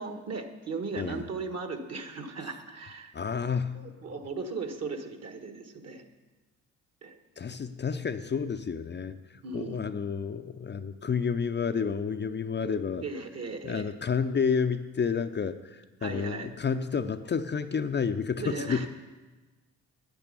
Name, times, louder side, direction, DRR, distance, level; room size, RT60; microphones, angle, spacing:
voice 1, 0.0-3.1 3.7-6.0 7.0-7.2 9.4-9.8 13.0-13.9 16.0-16.5 18.4-18.9, right 4 dB, 45° right, 6 dB, 1.6 m, -37 dB
voice 2, 3.1-3.9 7.4-9.2 9.5-13.0 13.6-18.9, left 6 dB, 30° left, 8 dB, 0.6 m, -30 dB
10.5 x 8.9 x 7.0 m, 1.2 s
supercardioid pair, 65°, 35 cm